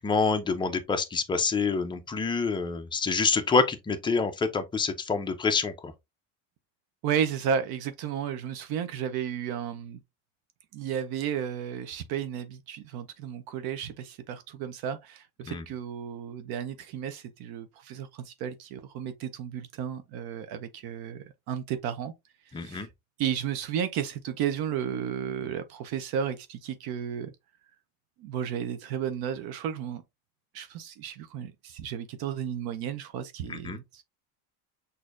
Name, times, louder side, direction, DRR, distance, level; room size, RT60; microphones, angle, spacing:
voice 1, 0.0-5.9 15.4-15.6 22.5-22.9 33.5-33.8, left 4 dB, 10° left, 0.4 m, -27 dB
voice 2, 7.0-10.0 10.7-22.1 22.6-22.9 23.2-27.3 28.2-30.0 30.5-34.0, right 8 dB, 60° right, 0.6 m, -33 dB
6.2 x 2.7 x 2.4 m
cardioid pair, 150°, 41 cm